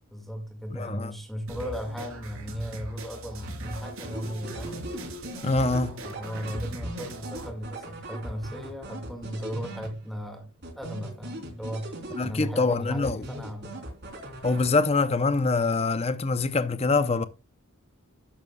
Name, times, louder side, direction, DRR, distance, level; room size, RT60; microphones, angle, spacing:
voice 1, 0.1-4.9 6.0-13.9, equal, ahead, 1.9 m, -36 dB
voice 2, 0.7-1.1 5.4-6.0 12.2-13.2 14.4-17.3, left 3 dB, 30° left, 0.6 m, -24 dB
sound 1, 1.5-7.5, right 1 dB, 65° right, 3.4 m, -39 dB
sound 2, 3.4-10.3 10.6-12.7 13.0-15.1, right 1 dB, 50° right, 3.5 m, -40 dB
12.5 x 10.5 x 2.3 m
head